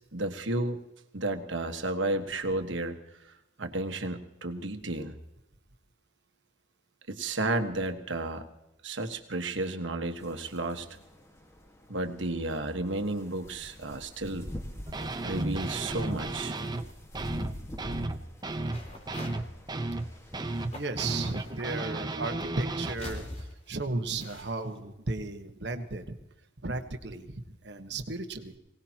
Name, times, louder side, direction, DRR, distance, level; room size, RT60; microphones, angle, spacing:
voice 1, 0.1-0.8 1.1-3.0 3.2-3.3 3.6-5.2 7.1-8.4 8.8-10.9 11.9-14.5 15.2-16.6, right 2 dB, 80° right, 6 dB, 1.5 m, -32 dB
sound 1, 10.2-20.9, equal, 15° left, 1.6 m, -46 dB
sound 2, 14.9-16.9 17.1-23.0, right 2 dB, 20° right, 0.9 m, -34 dB
sound 3, 18.7-19.4 19.7-20.3 20.7-21.6 22.4-24.8, left 1 dB, 35° left, 3.9 m, -43 dB
voice 2, 20.6-26.2 26.6-28.6, right 3 dB, 60° right, 6 dB, 1.3 m, -35 dB
23.5 x 18.5 x 2.9 m, 0.91 s
head